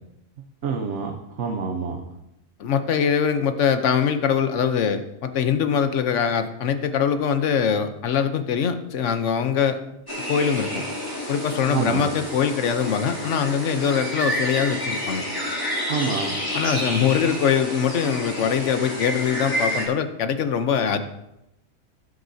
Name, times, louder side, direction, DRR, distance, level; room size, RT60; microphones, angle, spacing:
voice 1, 0.6-2.0 11.7-12.1 15.9-16.4, right 5 dB, 65° right, 3 dB, 1.2 m, -27 dB
voice 2, 2.6-9.8 10.3-10.8 11.3-15.2 16.5-21.0, left 7 dB, 65° left, 9 dB, 1.1 m, -23 dB
sound 1, 10.1-19.9, equal, 15° left, 2.8 m, -29 dB
16.5 x 7.9 x 2.7 m, 0.87 s
omnidirectional pair, 1.4 m